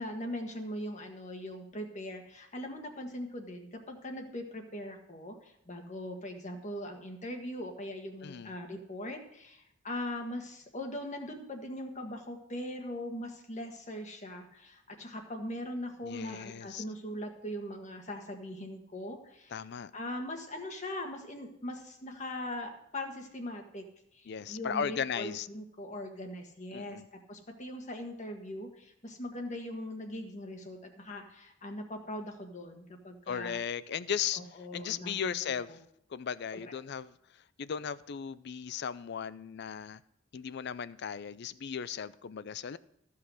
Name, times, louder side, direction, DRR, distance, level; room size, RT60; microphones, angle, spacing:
voice 1, 0.0-19.5 19.9-23.8 24.1-27.0 27.3-33.6 34.4-35.8, left 1 dB, 40° left, 4 dB, 1.6 m, -40 dB
voice 2, 8.2-8.5 16.0-16.8 19.5-19.9 24.3-25.5 26.7-27.1 33.3-34.4 34.7-35.8 36.1-37.1 37.6-40.0 40.3-42.8, left 7 dB, 60° left, 17 dB, 0.4 m, -36 dB
14.5 x 5.8 x 6.3 m, 0.74 s
head